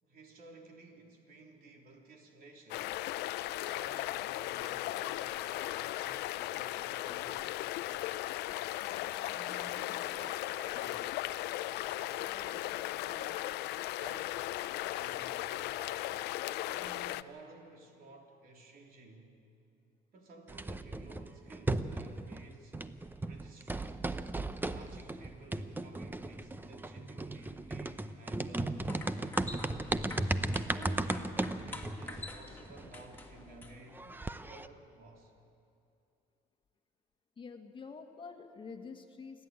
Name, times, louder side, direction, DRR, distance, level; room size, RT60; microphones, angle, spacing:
voice 1, 0.0-3.0 3.6-8.1 8.9-11.2 11.7-13.5 13.9-16.1 16.6-19.3 20.1-22.8 23.2-23.9 24.7-29.2 30.4-35.3, right 3 dB, 60° right, 1 dB, 3.4 m, -54 dB
sound 1, 2.7-17.2, left 15 dB, 85° left, 0.5 m, -37 dB
sound 2, 20.5-22.5 22.7-33.2 33.6-33.7 33.9-34.7, right 2 dB, 10° right, 0.7 m, -36 dB
sound 3, 28.6-34.0, left 2 dB, 10° left, 2.4 m, -48 dB
voice 2, 37.4-39.5, left 5 dB, 30° left, 5 dB, 1.5 m, -48 dB
28.0 x 11.5 x 9.0 m, 2.7 s
cardioid pair, 110°, 17 cm